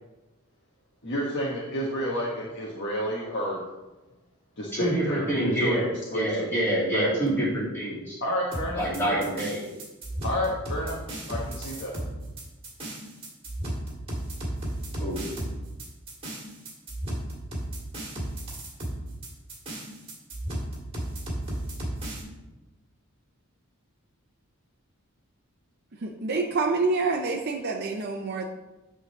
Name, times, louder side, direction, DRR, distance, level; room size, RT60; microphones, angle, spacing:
voice 1, 1.0-3.6 4.6-6.5 6.9-7.1 8.2-9.3 10.2-11.0 11.3-11.9, equal, 55° left, -4 dB, 1.2 m, -30 dB
voice 2, 4.7-5.8 6.1-8.2 8.8-9.6 15.0-15.2, right 1 dB, 10° left, -8 dB, 3.2 m, -26 dB
sound 1, 8.5-22.2, right 1 dB, 25° right, 2.0 m, -34 dB
voice 3, 26.0-28.4, right 3 dB, 50° right, 1 dB, 0.6 m, -27 dB
9.0 x 3.9 x 6.4 m, 1.1 s
head